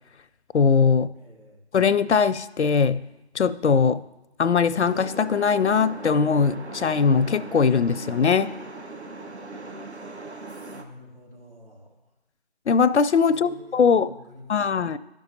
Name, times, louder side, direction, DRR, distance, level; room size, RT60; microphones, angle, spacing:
voice 1, 0.5-1.1 1.7-3.0 3.3-4.0 4.4-8.5 12.7-14.1 14.5-15.0, left 5 dB, 85° left, 0.5 m, -20 dB
voice 2, 1.1-1.6 10.7-12.0 13.3-15.0, left 1 dB, 55° right, 2.4 m, -48 dB
sound 1, 4.8-10.8, right 3 dB, 75° right, 1.0 m, -39 dB
13.0 x 5.3 x 2.7 m
figure-of-eight pair, 170°, 33 cm